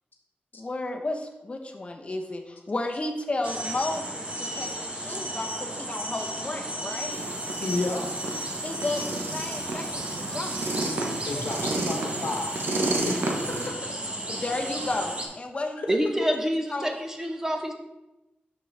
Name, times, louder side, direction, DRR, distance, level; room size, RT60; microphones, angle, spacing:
voice 1, 0.6-7.2 8.6-10.9 11.3-11.5 14.3-15.8 16.7-16.9, left 2 dB, 35° left, 3 dB, 0.7 m, -33 dB
sound 1, 3.4-15.3, right 1 dB, 30° right, 1.0 m, -34 dB
sound 2, 7.1-13.7, right 2 dB, 80° right, 1.0 m, -31 dB
voice 2, 7.6-8.0 11.2-12.7 13.0-13.9 15.8-15.9, left 2 dB, 65° left, 2 dB, 1.1 m, -32 dB
voice 3, 15.9-17.7, equal, 15° right, 3 dB, 0.6 m, -27 dB
6.0 x 6.0 x 3.3 m, 0.97 s
wide cardioid pair, 120°, 4 cm